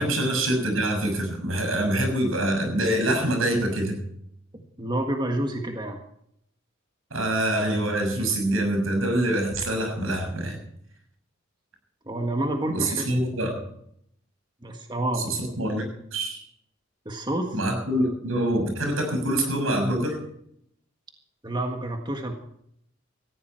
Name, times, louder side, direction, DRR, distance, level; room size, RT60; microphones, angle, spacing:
voice 1, 0.0-4.0 7.1-10.6 12.7-13.6 15.2-16.4 17.5-20.2, right 1 dB, 85° right, 4 dB, 6.5 m, -25 dB
voice 2, 4.5-6.0 12.0-13.1 14.6-15.4 17.0-17.6 21.4-22.3, right 1 dB, 20° right, 3 dB, 1.6 m, -29 dB
19.0 x 15.0 x 4.5 m, 0.70 s
head